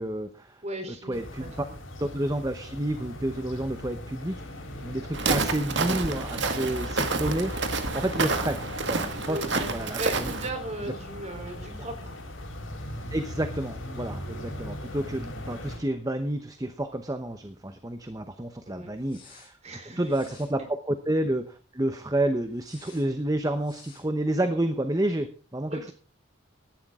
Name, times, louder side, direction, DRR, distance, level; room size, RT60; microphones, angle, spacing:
voice 1, 0.0-0.6 0.9-1.6 2.0-4.4 4.8-7.6 7.9-10.3 13.1-19.6 20.0-25.9, right 1 dB, 20° right, 8 dB, 0.9 m, -30 dB
voice 2, 0.6-1.5 9.3-9.7 10.0-12.1 18.7-18.9 19.6-20.0 25.7-25.9, right 1 dB, 35° right, 5 dB, 3.7 m, -37 dB
sound 1, 1.1-15.8, left 1 dB, 80° left, 7.0 m, -38 dB
Walk footsteps, 5.1-10.5, right 3 dB, 60° right, 1.9 m, -29 dB
sound 2, 14.9-17.0 17.3-17.4 19.0-19.5 20.0-20.5 22.6-23.1 23.6-24.1, left 3 dB, 25° left, 7.3 m, -56 dB
17.0 x 11.5 x 3.7 m, 0.37 s
head